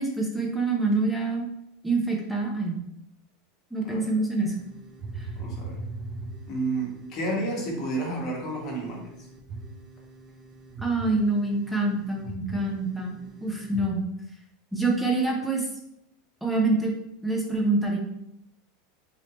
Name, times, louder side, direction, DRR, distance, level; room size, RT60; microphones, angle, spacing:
voice 1, 0.0-1.5 1.8-2.8 3.7-4.6 5.2-5.3 10.8-14.0 14.7-15.7 16.4-16.9 17.2-18.0, right 2 dB, ahead, -1 dB, 0.8 m, -26 dB
sound 1, 4.4-13.8, right 3 dB, 40° right, 0.7 m, -41 dB
voice 2, 5.3-5.8 6.5-9.3, right 2 dB, 40° left, -3 dB, 1.3 m, -31 dB
3.4 x 2.8 x 2.9 m, 0.80 s
supercardioid pair, 125°, 0 cm